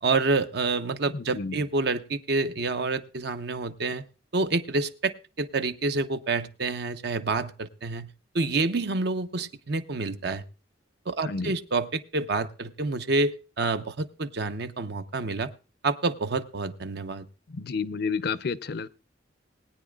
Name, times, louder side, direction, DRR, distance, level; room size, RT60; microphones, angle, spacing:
voice 1, 0.0-4.0 4.3-8.1 8.3-10.4 11.1-15.5 15.8-17.3, right 3 dB, 60° right, 0.8 m, -28 dB
voice 2, 1.1-1.6 11.3-11.5 17.5-18.9, left 5 dB, 55° left, 0.5 m, -30 dB
21.0 x 9.5 x 2.4 m
head